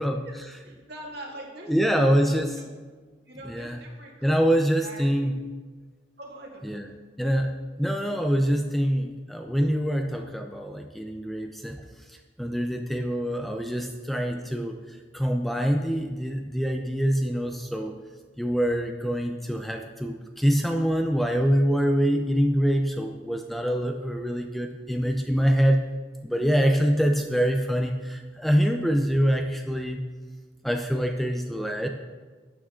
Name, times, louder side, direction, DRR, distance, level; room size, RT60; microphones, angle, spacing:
voice 1, 0.2-2.7 3.3-4.5 4.8-5.1 6.2-7.0, right 1 dB, 65° right, -1 dB, 2.2 m, -43 dB
voice 2, 1.7-2.6 3.4-3.8 4.2-5.4 6.6-6.9 7.2-11.8 12.4-14.8 15.1-18.0 18.4-25.8 26.2-30.0 30.6-31.9, equal, ahead, 4 dB, 0.5 m, -25 dB
12.5 x 8.7 x 3.8 m, 1.4 s
head